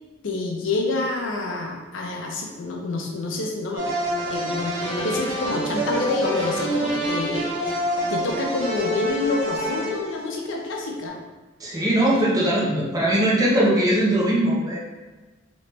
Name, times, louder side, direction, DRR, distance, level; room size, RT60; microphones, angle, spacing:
voice 1, 0.2-3.9 4.3-7.5 8.1-11.2 12.1-12.3, left 2 dB, 85° left, 0 dB, 0.5 m, -27 dB
sound 1, 3.8-10.8, equal, 85° right, 1.0 m, -27 dB
voice 2, 11.6-14.8, right 1 dB, 20° right, -6 dB, 0.6 m, -20 dB
3.2 x 3.0 x 3.0 m, 1.3 s
head